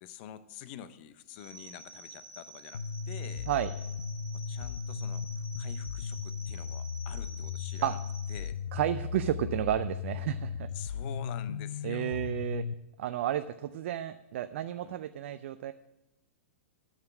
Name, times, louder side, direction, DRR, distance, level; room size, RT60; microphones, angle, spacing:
voice 1, 0.0-3.5 4.3-8.0 8.3-8.6 10.7-12.3 14.8-15.0, left 11 dB, 50° left, 13 dB, 0.7 m, -47 dB
sound 1, 1.3-8.5, right 2 dB, 10° right, 1.1 m, -50 dB
sound 2, 2.7-12.7, left 6 dB, 85° left, 0.4 m, -36 dB
voice 2, 8.7-10.7 11.8-12.7 13.0-15.7, right 12 dB, 60° right, 11 dB, 0.4 m, -32 dB
9.5 x 6.6 x 7.0 m, 0.92 s
hypercardioid pair, 110°, 7 cm